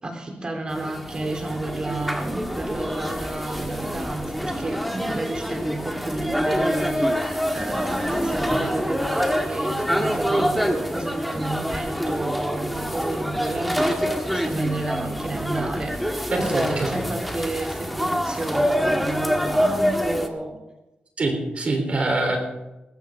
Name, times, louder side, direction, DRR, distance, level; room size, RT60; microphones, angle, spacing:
voice 1, 0.0-20.6, right 2 dB, 30° right, 2 dB, 3.4 m, -31 dB
sound 1, 0.7-20.3, equal, ahead, 1.7 m, -26 dB
voice 2, 16.3-17.0 21.2-22.4, right 2 dB, 45° right, 2 dB, 3.5 m, -24 dB
20.5 x 15.0 x 3.6 m, 0.99 s
wide cardioid pair, 110°, 3 cm